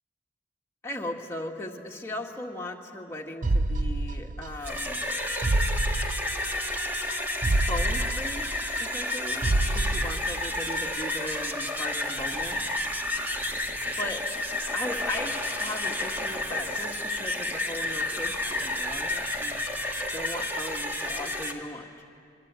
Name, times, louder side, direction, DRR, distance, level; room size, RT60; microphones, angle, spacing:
voice 1, 0.8-5.1 7.4-8.5 8.8-9.5 9.7-12.6 14.0-14.3 14.7-19.6 20.1-22.0, left 1 dB, 15° left, 0 dB, 1.9 m, -37 dB
sound 1, 3.4-4.8 5.1-5.2 5.4-6.8 7.1-7.2 7.4-9.1 9.4-10.8 11.1-11.2, right 2 dB, 40° right, 0.6 m, -28 dB
sound 2, 4.5-21.5, left 1 dB, 10° right, 1.7 m, -31 dB
29.5 x 23.0 x 8.3 m, 2.3 s
head